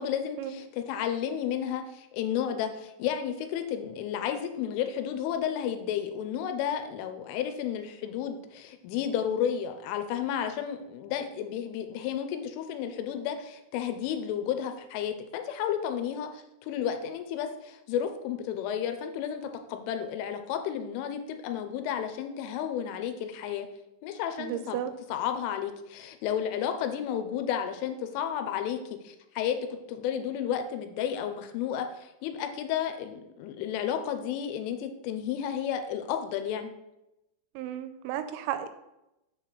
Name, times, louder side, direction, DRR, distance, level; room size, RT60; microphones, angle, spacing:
voice 1, 0.0-19.4 19.7-23.7 24.0-24.8 25.1-28.8 29.0-36.7, left 9 dB, 85° left, 7 dB, 3.0 m, -32 dB
voice 2, 24.4-24.9 37.6-38.7, right 11 dB, 85° right, 10 dB, 3.2 m, -33 dB
7.5 x 6.8 x 3.0 m, 0.90 s
omnidirectional pair, 5.8 m